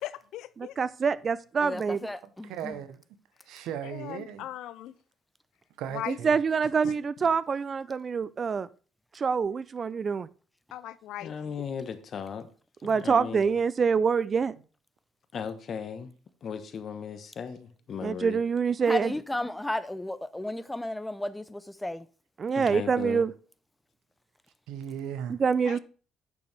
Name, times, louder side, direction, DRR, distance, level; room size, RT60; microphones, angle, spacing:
voice 1, 0.0-0.7 3.8-4.9 5.9-6.2 6.8-6.9 10.7-11.3 25.6-25.8, left 13 dB, 80° left, 0.5 m, -38 dB
voice 2, 0.6-2.1 6.1-8.7 9.2-10.3 12.8-14.5 18.0-19.1 22.4-23.3 25.3-25.8, right 5 dB, 40° right, 0.4 m, -26 dB
voice 3, 1.6-2.7 18.8-22.1, left 1 dB, 10° left, 0.6 m, -34 dB
voice 4, 2.2-3.0 3.4-4.5 5.8-6.4 22.7-22.8 24.7-25.4, right 9 dB, 85° right, 0.9 m, -37 dB
voice 5, 11.2-12.5 12.8-13.5 15.3-16.1 16.4-18.4 22.5-23.3, left 7 dB, 50° left, 1.0 m, -37 dB
8.3 x 6.6 x 3.3 m
cardioid pair, 95°, 0 cm